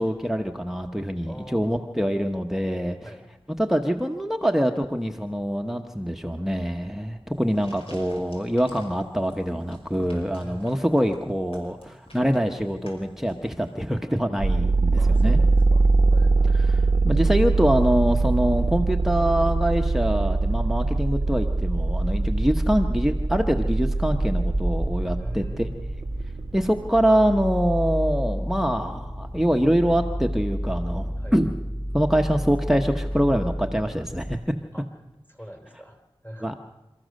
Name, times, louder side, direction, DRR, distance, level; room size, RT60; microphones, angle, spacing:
voice 1, 0.0-3.1 3.6-15.4 16.5-25.7 26.5-31.5 31.9-34.4 36.4-36.6, equal, 5° right, 4 dB, 1.0 m, -24 dB
voice 2, 1.2-1.9 3.0-3.3 10.4-10.8 14.9-16.7 25.2-26.2 31.2-31.4 34.7-34.9 35.3-36.6, equal, 20° left, 5 dB, 3.7 m, -44 dB
sound 1, 7.3-13.9, left 1 dB, 75° left, 5.8 m, -50 dB
sound 2, 14.4-27.1, right 3 dB, 55° right, 0.8 m, -22 dB
sound 3, 24.1-34.4, equal, 40° left, 5.8 m, -31 dB
28.0 x 14.0 x 6.5 m, 1.1 s
wide cardioid pair, 50°, 10 cm